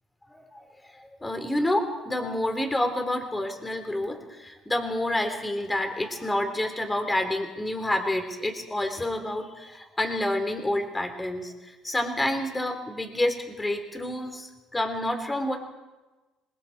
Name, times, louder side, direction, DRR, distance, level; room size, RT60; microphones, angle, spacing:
voice 1, 0.3-0.6 1.0-15.6, left 1 dB, 15° left, 5 dB, 3.5 m, -28 dB
27.0 x 21.0 x 4.8 m, 1.1 s
cardioid pair, 105°, 0 cm